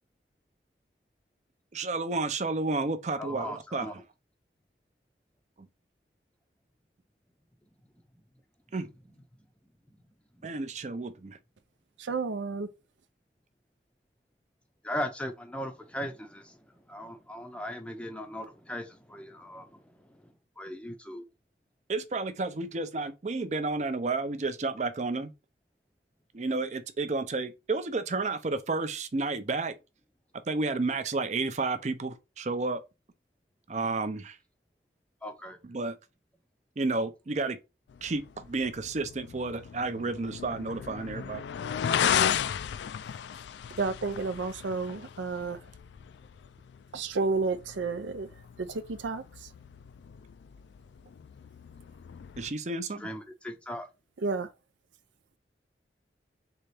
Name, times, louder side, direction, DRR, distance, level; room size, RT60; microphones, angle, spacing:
voice 1, 1.7-4.0 8.7-8.9 10.4-11.4 21.9-25.3 26.3-29.7 30.5-32.8 33.7-34.4 35.6-36.0 36.8-37.6 38.0-41.4 52.4-53.1, right 3 dB, 40° right, 0.5 m, -31 dB
voice 2, 3.2-3.9 14.8-16.6 16.9-19.8 20.6-21.2 35.2-35.6 53.0-53.9, left 1 dB, 5° left, 0.6 m, -38 dB
voice 3, 12.0-12.7 43.8-45.6 46.9-48.3 48.6-49.2 54.2-54.5, right 4 dB, 85° right, 0.5 m, -31 dB
sound 1, 37.9-52.5, left 8 dB, 75° left, 0.3 m, -35 dB
4.0 x 3.4 x 3.3 m
head